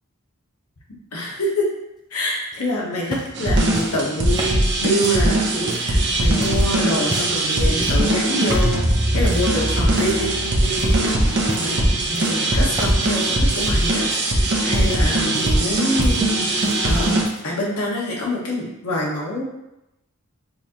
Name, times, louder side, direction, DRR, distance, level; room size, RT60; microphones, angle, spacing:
voice 1, 1.1-1.7 2.1-8.8 9.1-14.1 14.3-19.4, left 1 dB, 90° left, -3 dB, 1.1 m, -26 dB
sound 1, 2.5-6.0 6.4-6.7 7.1-7.5 7.8-8.1 8.5-8.8 9.2-9.5 9.9-10.4 10.8-11.0 11.4-11.8 12.1-13.2 13.5-15.7 16.0-16.8 17.1-17.6 18.5-18.6, right 2 dB, 20° right, 0.6 m, -33 dB
sound 2, 3.3-17.2, right 1 dB, 55° right, 0.8 m, -20 dB
6.8 x 2.5 x 2.9 m, 0.91 s
head